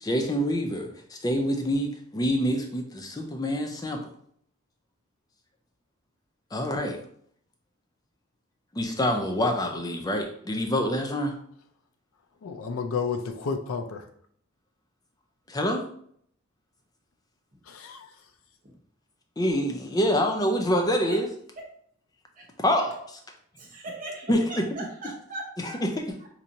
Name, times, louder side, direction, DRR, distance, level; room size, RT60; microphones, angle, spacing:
voice 1, 0.0-4.0 6.5-7.0 8.7-11.4 15.5-15.8 19.4-21.3 22.6-23.0 24.3-24.7 25.8-26.1, equal, 20° left, 0.4 m, -26 dB
voice 2, 12.4-14.0 17.7-18.1, left 5 dB, 80° left, 0.4 m, -31 dB
voice 3, 23.6-25.8 26.2-26.3, right 2 dB, 40° right, 1.0 m, -39 dB
4.4 x 2.6 x 2.7 m
head